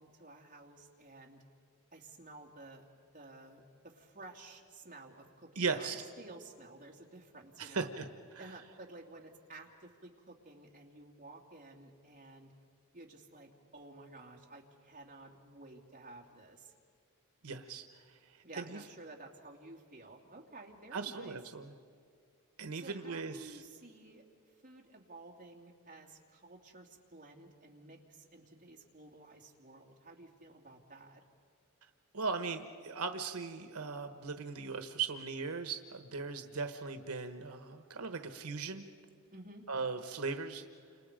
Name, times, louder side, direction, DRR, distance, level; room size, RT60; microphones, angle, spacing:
voice 1, 0.0-1.4 1.9-2.9 3.1-7.9 8.4-12.5 12.9-16.7 18.4-21.4 22.7-24.2 24.6-31.2 39.3-39.7, right 2 dB, 40° right, 0 dB, 2.8 m, -53 dB
voice 2, 5.6-6.0 7.6-8.1 17.4-17.8 18.6-18.8 20.9-21.7 22.6-23.6 32.1-38.8 39.7-40.6, right 4 dB, 85° right, 8 dB, 1.1 m, -38 dB
29.5 x 27.5 x 5.1 m, 2.3 s
head